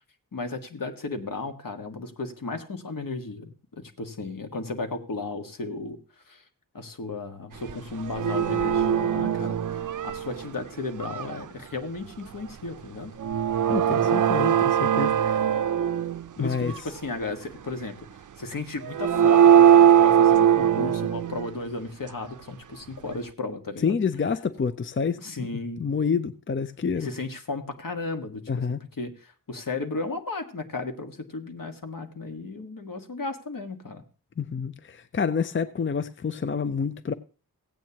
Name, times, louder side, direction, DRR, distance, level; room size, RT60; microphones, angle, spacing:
voice 1, 0.3-6.0 6.3-6.4 6.7-13.1 16.4-18.0 18.4-24.0 25.2-25.8 26.9-28.6 29.0-34.0, left 3 dB, 65° left, 1.7 m, -34 dB
sound 1, 7.7-7.8 8.0-10.5 11.0-11.4 13.2-16.3 16.7-16.8 18.8-21.5, right 9 dB, 60° right, 0.5 m, -20 dB
voice 2, 13.7-15.4 16.4-16.7 23.8-25.2 25.8-27.1 28.5-28.8 34.4-37.1, left 6 dB, 35° left, 0.5 m, -28 dB
16.0 x 9.1 x 2.9 m
wide cardioid pair, 75°, 36 cm